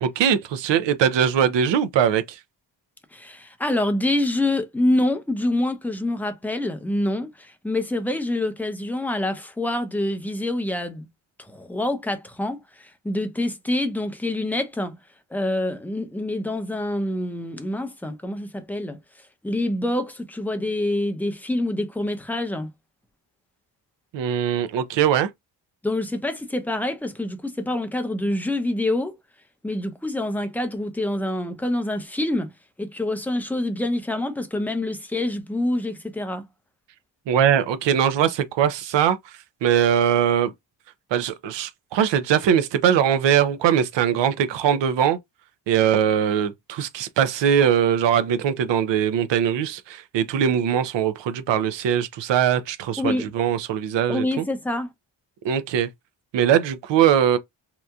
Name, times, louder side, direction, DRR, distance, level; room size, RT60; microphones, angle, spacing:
voice 1, 0.0-2.4 24.1-25.3 37.3-39.2 39.6-40.5 41.1-45.2 45.7-54.4 55.4-55.9 56.3-57.4, right 9 dB, 75° right, 0.6 m, -21 dB
voice 2, 3.1-11.1 11.5-15.0 15.3-19.0 19.4-22.7 25.8-29.2 29.6-32.5 32.8-36.5 53.0-53.3 54.1-54.9, left 1 dB, 5° left, 0.5 m, -26 dB
2.9 x 2.4 x 2.3 m
cardioid pair, 95°, 44 cm